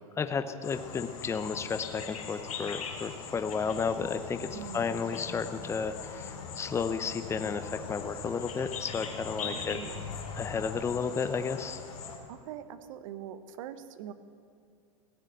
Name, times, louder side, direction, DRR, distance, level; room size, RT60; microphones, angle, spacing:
voice 1, 0.2-9.8 10.3-11.8, left 5 dB, 15° left, 9 dB, 0.6 m, -33 dB
sound 1, 0.6-12.2, left 6 dB, 85° left, 2.3 m, -41 dB
sound 2, 3.4-11.1, left 3 dB, 65° left, 2.0 m, -54 dB
voice 2, 4.5-5.0 9.4-10.1 12.3-14.1, right 9 dB, 65° right, 13 dB, 1.0 m, -43 dB
16.0 x 6.6 x 10.0 m, 2.3 s
hypercardioid pair, 115°, 18 cm